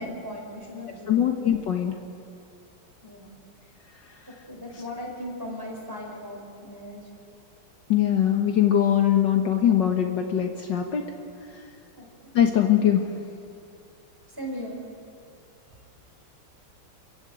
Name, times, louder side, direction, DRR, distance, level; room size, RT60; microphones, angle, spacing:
voice 1, 0.0-1.3 3.0-3.4 4.3-7.0 12.0-12.1 14.4-14.8, equal, 10° right, -1 dB, 4.7 m, -37 dB
voice 2, 1.1-1.9 7.9-11.1 12.3-13.1, left 10 dB, 60° left, 4 dB, 1.8 m, -21 dB
27.0 x 15.5 x 9.2 m, 2.5 s
omnidirectional pair, 2.3 m